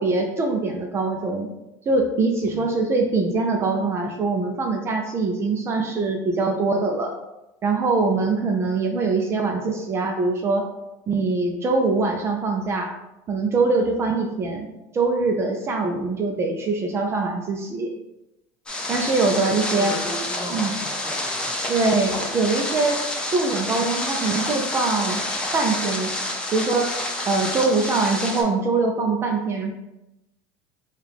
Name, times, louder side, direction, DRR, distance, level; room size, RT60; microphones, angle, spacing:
voice 1, 0.0-1.5 1.9-7.1 7.6-10.7 11.1-12.9 13.3-14.7 14.9-17.9 18.9-19.9 20.5-20.7 21.7-23.0 23.3-25.2 25.5-26.1 26.5-26.9 27.3-29.7, right 3 dB, 30° right, 2 dB, 0.5 m, -23 dB
sound 1, 18.7-28.4, left 1 dB, 10° left, 0.8 m, -28 dB
voice 2, 19.7-21.5, equal, 25° left, -1 dB, 1.0 m, -36 dB
4.6 x 2.4 x 3.5 m, 0.94 s
supercardioid pair, 130°, 9 cm